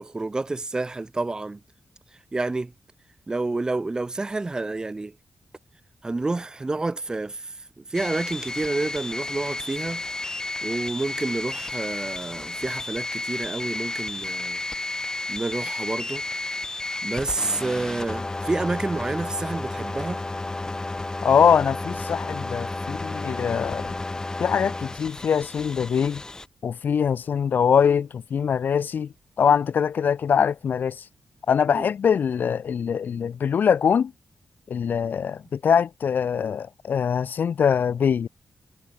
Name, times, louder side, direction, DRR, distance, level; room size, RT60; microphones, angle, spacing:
voice 1, 0.0-1.6 2.3-2.7 3.3-5.1 6.0-10.0 10.6-14.6 15.3-16.2 17.0-20.2 31.7-31.9, right 2 dB, 20° right, 1.8 m, -29 dB
sound 1, 7.9-26.5, left 2 dB, 20° left, 3.7 m, -32 dB
voice 2, 21.2-23.9 24.4-26.2 26.6-29.1 29.4-31.0 31.5-34.1 34.7-38.3, left 7 dB, 65° left, 0.8 m, -23 dB
wide cardioid pair, 145°, 3 cm